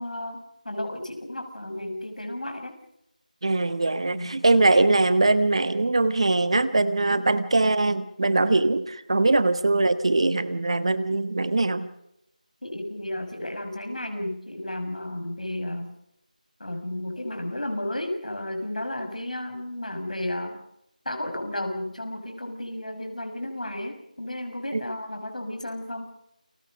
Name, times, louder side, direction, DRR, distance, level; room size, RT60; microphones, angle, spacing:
voice 1, 0.0-2.7 4.1-4.3 7.1-7.2 12.6-15.9 16.6-20.6 21.0-26.1, left 1 dB, 65° left, 5 dB, 6.2 m, -33 dB
voice 2, 3.4-11.9 24.7-24.8, right 2 dB, 45° right, 13 dB, 1.2 m, -22 dB
29.5 x 21.5 x 5.2 m, 0.82 s
figure-of-eight pair, 170°, 4 cm